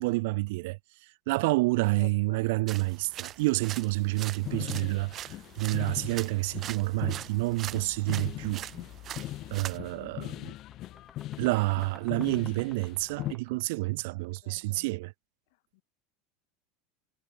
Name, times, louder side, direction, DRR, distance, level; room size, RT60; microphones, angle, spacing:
voice 1, 0.0-8.6 9.5-10.5 11.4-15.1, right 23 dB, 70° right, 1.1 m, -29 dB
voice 2, 2.0-2.5 9.8-10.2 14.4-14.8, left 25 dB, 70° left, 0.9 m, -50 dB
sound 1, 2.7-9.8, right 11 dB, 40° right, 1.0 m, -43 dB
sound 2, 4.4-13.3, left 15 dB, 45° left, 0.9 m, -40 dB
sound 3, 9.4-9.5 9.8-14.7, left 2 dB, 10° left, 5.0 m, -55 dB
supercardioid pair, 120°, 0 cm